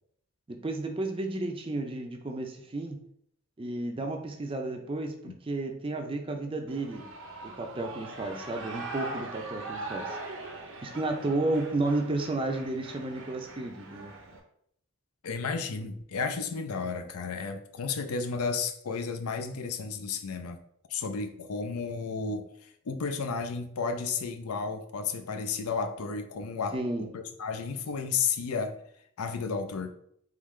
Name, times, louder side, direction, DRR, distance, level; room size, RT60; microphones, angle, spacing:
voice 1, 0.5-3.0 3.6-7.1 7.4-10.2 10.8-14.1 26.7-27.1, right 2 dB, 25° right, 4 dB, 0.4 m, -32 dB
Shout / Cheering, 6.7-14.4, right 2 dB, 60° right, 0.7 m, -41 dB
voice 2, 15.2-20.6 20.9-28.8 29.2-29.9, left 5 dB, 85° left, 7 dB, 0.5 m, -33 dB
3.7 x 3.6 x 3.2 m, 0.70 s
head